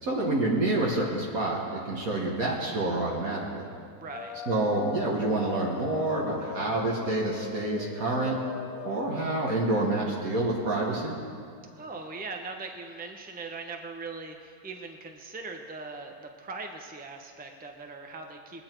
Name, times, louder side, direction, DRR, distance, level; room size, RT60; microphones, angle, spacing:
voice 1, 0.0-3.7 4.5-8.4 8.8-11.2, right 2 dB, 65° right, -3 dB, 2.0 m, -28 dB
voice 2, 4.0-4.4 11.8-18.6, right 3 dB, 10° right, 3 dB, 0.7 m, -40 dB
sound 1, 4.1-9.7, left 8 dB, 70° left, 1.1 m, -40 dB
21.0 x 9.4 x 4.5 m, 2.3 s
omnidirectional pair, 1.6 m